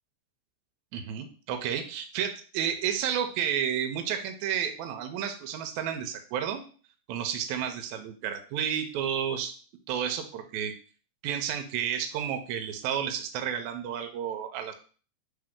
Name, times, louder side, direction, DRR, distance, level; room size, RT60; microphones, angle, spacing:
voice 1, 0.9-6.6 7.1-9.5 9.9-10.7 11.2-14.7, right 9 dB, 80° right, 6 dB, 1.9 m, -31 dB
3.8 x 3.8 x 3.5 m, 0.40 s
omnidirectional pair, 3.5 m